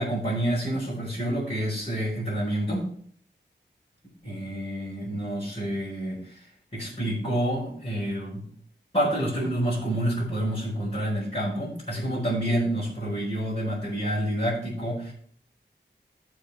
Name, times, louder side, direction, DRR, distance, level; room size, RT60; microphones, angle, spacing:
voice 1, 0.0-2.9 4.2-6.5 6.7-8.4 8.9-15.1, right 1 dB, 35° left, -9 dB, 4.1 m, -28 dB
13.0 x 5.0 x 4.4 m, 0.63 s
wide cardioid pair, 70°, 19 cm